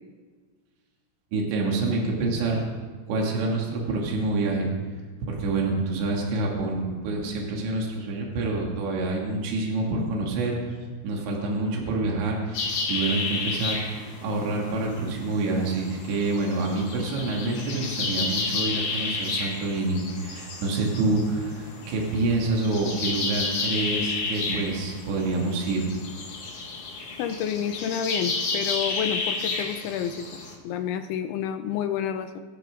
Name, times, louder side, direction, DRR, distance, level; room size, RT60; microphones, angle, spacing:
voice 1, 1.3-2.6 3.1-4.7 5.3-10.7 11.0-13.8 14.2-25.9, right 2 dB, 65° right, -2 dB, 4.7 m, -27 dB
sound 1, 12.5-30.5, left 4 dB, 50° left, 2.7 m, -32 dB
voice 2, 27.2-30.3 30.6-32.4, left 8 dB, 75° left, 8 dB, 3.0 m, -29 dB
23.0 x 14.5 x 3.9 m, 1.5 s
omnidirectional pair, 5.8 m